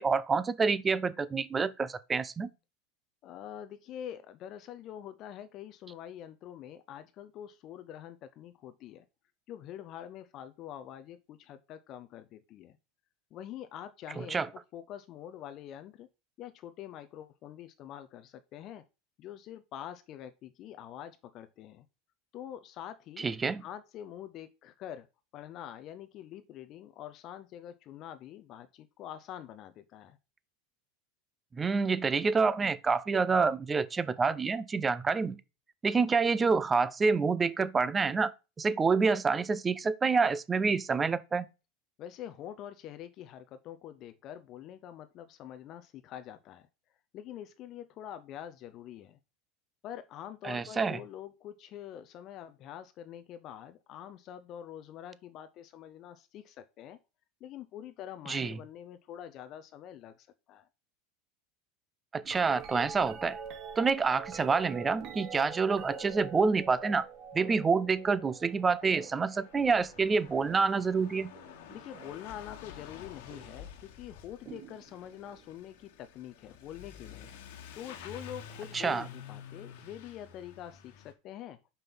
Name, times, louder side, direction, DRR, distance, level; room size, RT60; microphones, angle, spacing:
voice 1, 0.0-2.5 14.2-14.5 23.2-23.6 31.5-35.4 35.8-38.3 38.6-41.5 50.4-51.0 58.3-58.6 62.1-63.4 63.8-67.1 67.3-71.3 78.7-79.0, right 4 dB, 20° right, 0.6 m, -27 dB
voice 2, 3.2-9.0 9.5-12.8 13.3-16.1 16.4-18.8 19.2-21.9 22.3-23.3 23.6-25.1 25.3-30.2 42.0-46.7 47.1-49.2 49.8-57.0 57.4-60.7 71.7-77.4 77.7-81.6, left 10 dB, 45° left, 0.6 m, -45 dB
sound 1, 62.2-72.4 73.3-73.7 74.5-75.4 77.2-77.3, right 6 dB, 45° right, 1.5 m, -46 dB
Truck / Accelerating revving vroom, 67.5-67.6 67.7-81.1, left 8 dB, 75° left, 1.5 m, -50 dB
5.6 x 5.3 x 6.0 m
supercardioid pair, 125°, 0 cm